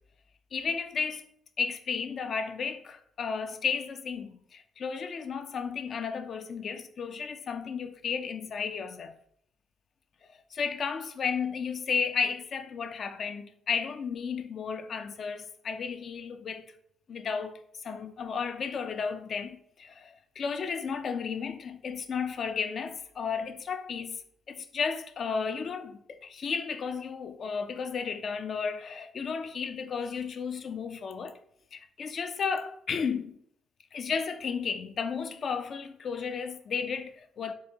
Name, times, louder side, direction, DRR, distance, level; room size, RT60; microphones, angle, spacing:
voice 1, 0.5-1.3 1.6-9.2 10.5-16.7 17.1-24.2 24.5-31.4 31.7-33.4 33.9-37.5, left 6 dB, 55° left, 0.3 m, -33 dB
4.5 x 2.3 x 2.8 m
cardioid pair, 90°, 0 cm